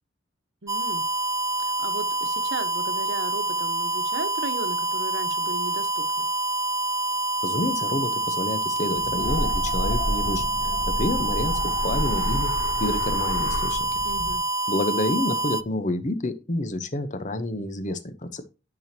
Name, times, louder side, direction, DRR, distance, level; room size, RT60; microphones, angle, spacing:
voice 1, 0.6-1.0 1.6-6.3 14.0-14.4, right 3 dB, 65° right, 1.2 m, -36 dB
sound 1, 0.7-15.6, right 2 dB, 15° right, 0.3 m, -27 dB
voice 2, 7.4-12.5 12.8-13.9 14.7-18.4, left 1 dB, 40° left, 0.9 m, -29 dB
sound 2, 9.0-14.4, left 1 dB, 65° left, 3.0 m, -29 dB
10.0 x 6.0 x 2.9 m
head